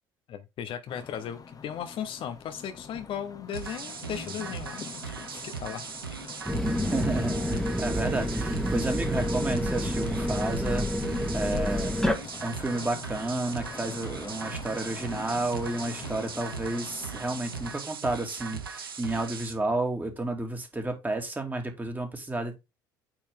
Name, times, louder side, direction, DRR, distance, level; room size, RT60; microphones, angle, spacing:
voice 1, 0.3-5.9, left 9 dB, 50° left, 0.8 m, -37 dB
sound 1, 0.9-17.8, left 5 dB, 30° left, 1.1 m, -45 dB
sound 2, 3.5-19.5, right 6 dB, 85° right, 0.9 m, -39 dB
sound 3, 6.5-12.2, equal, 5° left, 1.6 m, -28 dB
voice 2, 6.9-11.9 12.4-22.6, right 2 dB, 15° right, 2.3 m, -31 dB
8.8 x 4.4 x 3.7 m
figure-of-eight pair, 60°, 12 cm